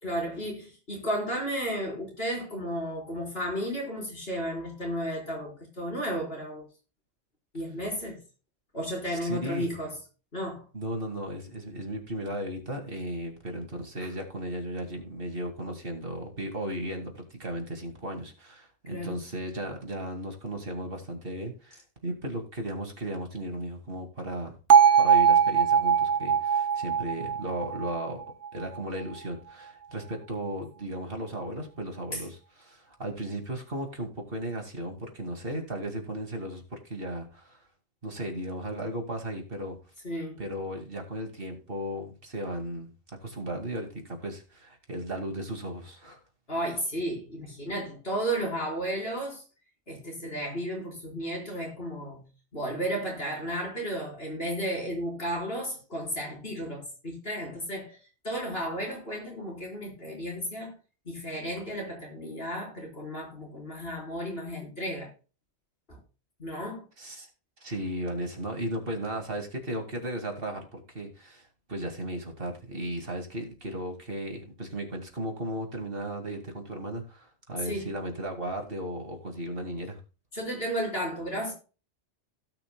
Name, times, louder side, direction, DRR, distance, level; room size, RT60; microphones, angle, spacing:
voice 1, 0.0-6.6 7.5-8.2 8.7-10.0 10.3-10.6 18.9-19.2 32.1-32.2 40.0-40.4 46.5-49.4 49.9-52.2 52.5-58.0 58.2-60.7 61.1-65.1 65.9-66.0 66.4-66.8 77.6-77.9 80.3-81.5, equal, 60° left, 4.8 m, -33 dB
voice 2, 9.1-9.7 10.7-24.6 25.0-28.2 28.5-37.6 38.0-39.8 40.4-42.9 43.2-46.2 67.0-67.3 67.6-80.0, right 1 dB, 55° right, 2.5 m, -35 dB
Bell, 24.7-28.8, right 7 dB, 85° right, 1.2 m, -21 dB
17.0 x 5.9 x 2.3 m
omnidirectional pair, 1.2 m